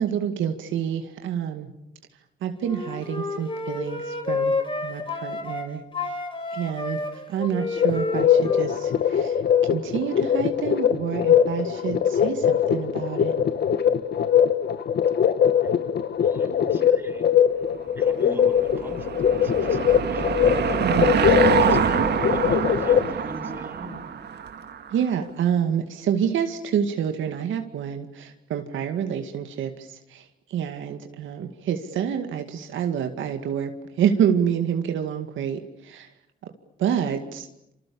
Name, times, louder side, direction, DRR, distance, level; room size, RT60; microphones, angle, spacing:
voice 1, 0.0-1.7 2.4-4.5 4.8-6.2 6.5-9.4 9.7-13.3 20.8-21.2 24.9-36.1 36.4-36.5 36.8-37.5, right 8 dB, 75° right, 6 dB, 2.1 m, -28 dB
Wind instrument woodwind instrument, 2.6-5.7 5.9-9.2, left 3 dB, 25° left, 5.2 m, -30 dB
sound 1, 7.8-23.1, left 8 dB, 55° left, 1.8 m, -22 dB
voice 2, 16.2-17.3 17.9-20.4 20.9-24.0 31.4-31.5 37.0-37.1, right 1 dB, 10° right, 3 dB, 6.0 m, -42 dB
Car passing by / Engine, 18.1-24.9, right 7 dB, 55° right, 2.0 m, -25 dB
27.5 x 26.0 x 7.0 m, 0.83 s
cardioid pair, 90°, 20 cm